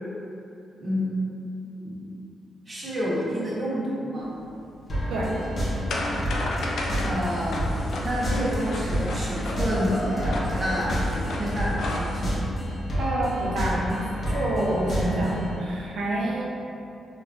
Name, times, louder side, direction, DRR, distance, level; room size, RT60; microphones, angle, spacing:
voice 1, 0.8-1.2 1.8-2.0 2.7-4.3 7.0-12.4, equal, 30° right, -8 dB, 0.9 m, -29 dB
sound 1, 4.3-12.4, left 1 dB, 80° left, 0.3 m, -33 dB
Cheering, 4.8-11.8, equal, 20° left, 1.0 m, -38 dB
sound 2, 4.9-15.6, equal, 45° left, 0.7 m, -29 dB
voice 2, 13.0-14.0 14.3-16.5, right 1 dB, 90° right, -5 dB, 0.4 m, -27 dB
3.3 x 2.4 x 2.3 m, 2.7 s
cardioid pair, 90°, 0 cm